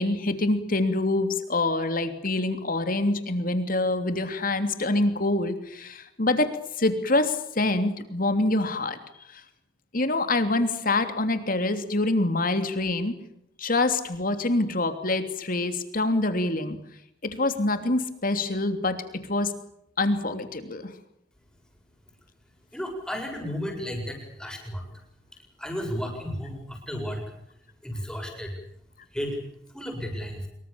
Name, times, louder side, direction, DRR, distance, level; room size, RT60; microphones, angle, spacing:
voice 1, 0.0-9.0 9.3-9.4 9.9-13.1 13.6-16.8 17.2-19.0 19.3-19.5 20.0-20.9, left 2 dB, 50° left, 9 dB, 3.1 m, -25 dB
voice 2, 22.7-24.9 25.6-27.2 27.8-28.5 29.1-29.4 29.7-30.5, equal, 5° left, 2 dB, 7.5 m, -33 dB
25.5 x 23.5 x 7.2 m, 0.77 s
head